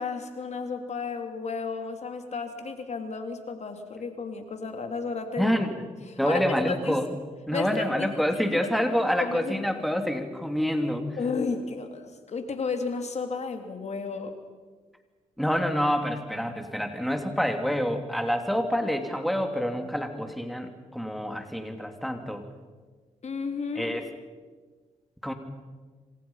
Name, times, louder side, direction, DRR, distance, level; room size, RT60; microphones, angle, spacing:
voice 1, 0.0-5.6 6.2-7.0 7.5-8.1 8.5-8.7 9.2-9.6 11.2-14.3 23.2-23.9, left 4 dB, 55° left, 6 dB, 3.1 m, -33 dB
voice 2, 5.4-5.7 6.2-7.1 7.5-11.1 15.4-22.4 23.7-24.1 25.2-25.3, equal, ahead, 5 dB, 3.1 m, -27 dB
27.5 x 25.5 x 5.8 m, 1.4 s
cardioid pair, 70°, 14 cm